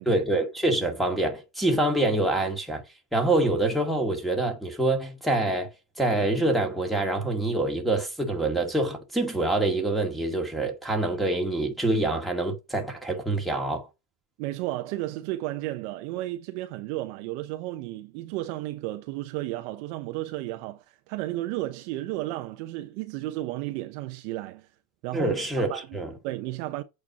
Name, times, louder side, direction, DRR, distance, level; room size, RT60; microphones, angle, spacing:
voice 1, 0.1-2.8 3.1-5.7 6.0-13.9 25.1-26.1, right 2 dB, ahead, 1.9 m, -26 dB
voice 2, 14.4-24.7 25.0-26.0 26.2-26.8, right 16 dB, 50° right, 0.9 m, -33 dB
8.6 x 4.6 x 6.0 m
supercardioid pair, 160°, 46 cm